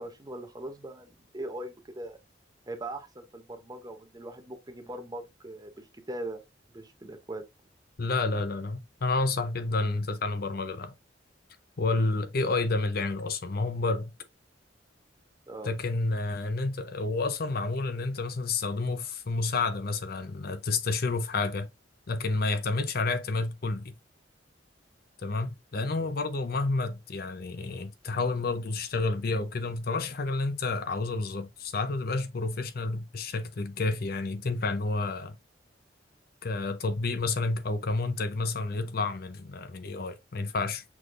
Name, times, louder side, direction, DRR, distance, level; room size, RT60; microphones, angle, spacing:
voice 1, 0.0-2.2 2.7-6.4 6.7-7.4 15.5-15.7 26.0-26.1, right 1 dB, 20° right, 0.8 m, -40 dB
voice 2, 8.0-10.9 11.8-14.1 15.6-21.7 22.1-23.9 25.2-35.4 36.4-40.8, left 3 dB, 55° left, 0.6 m, -30 dB
6.1 x 3.4 x 2.5 m
head